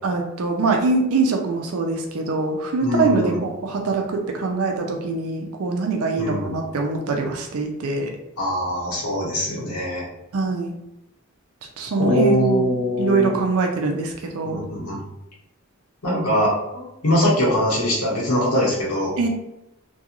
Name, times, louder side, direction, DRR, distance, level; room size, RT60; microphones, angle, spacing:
voice 1, 0.0-8.1 10.3-10.7 11.8-14.6 19.2-19.3, right 3 dB, 80° right, 2 dB, 0.4 m, -23 dB
voice 2, 2.8-3.4 6.2-6.6 8.4-10.1 12.0-13.3 14.4-15.0 16.0-19.1, equal, 90° left, -5 dB, 1.0 m, -22 dB
2.4 x 2.2 x 2.9 m, 0.87 s
head